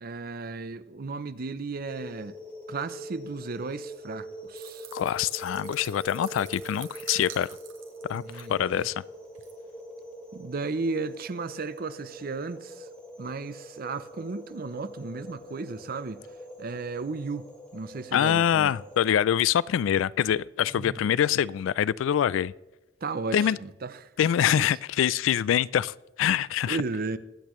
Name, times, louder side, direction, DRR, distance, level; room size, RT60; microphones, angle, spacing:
voice 1, 0.0-2.4 2.7-4.9 8.1-8.9 10.3-12.9 13.2-16.2 16.6-18.8 20.7-21.0 23.0-24.1 24.6-24.7 26.7-27.2, right 3 dB, 50° right, 0.6 m, -35 dB
sound 1, 1.9-19.1, equal, 5° left, 2.4 m, -44 dB
sound 2, 4.6-8.9 9.4-9.5, right 9 dB, 85° right, 1.7 m, -47 dB
voice 2, 4.9-7.5 8.1-8.9 18.1-22.5 23.3-23.6 24.2-26.8, left 9 dB, 80° left, 0.3 m, -25 dB
22.5 x 8.3 x 3.1 m
head